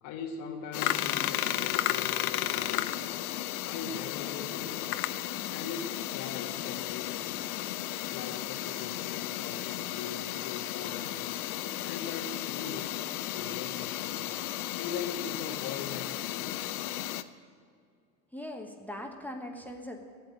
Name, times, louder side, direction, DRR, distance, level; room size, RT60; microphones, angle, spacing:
voice 1, 0.0-3.0 3.6-4.9 5.5-7.4 8.1-11.2 11.8-14.3 14.8-16.7, left 6 dB, 40° left, 0 dB, 1.2 m, -41 dB
sound 1, 0.7-17.2, left 14 dB, 65° left, 0.7 m, -34 dB
voice 2, 18.3-20.0, left 1 dB, 5° left, 3 dB, 1.1 m, -40 dB
12.5 x 9.1 x 8.8 m, 2.3 s
hypercardioid pair, 95°, 48 cm